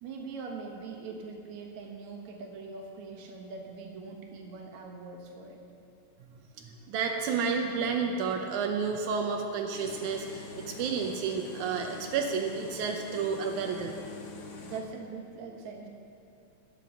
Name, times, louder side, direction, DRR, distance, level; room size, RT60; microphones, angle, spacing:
voice 1, 0.0-5.6 14.6-15.9, right 4 dB, 70° right, 1 dB, 2.6 m, -42 dB
voice 2, 6.3-13.9, right 5 dB, 90° right, 2 dB, 2.2 m, -31 dB
sound 1, 9.7-14.8, left 4 dB, 55° left, 1.2 m, -44 dB
13.0 x 9.3 x 6.9 m, 2.7 s
omnidirectional pair, 3.4 m